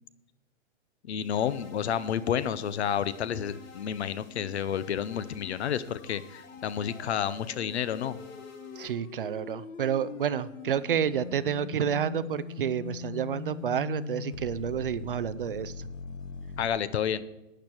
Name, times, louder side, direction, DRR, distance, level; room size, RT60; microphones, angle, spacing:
voice 1, 1.1-8.2 16.6-17.2, left 8 dB, 55° left, 16 dB, 0.8 m, -30 dB
sound 1, 1.2-8.9, left 6 dB, 25° left, 1.7 m, -50 dB
sound 2, 5.3-16.7, left 6 dB, 75° left, 1.3 m, -41 dB
voice 2, 8.8-15.9, right 9 dB, 45° right, 16 dB, 0.4 m, -30 dB
12.0 x 9.0 x 4.5 m, 1.0 s
hypercardioid pair, 170°, 38 cm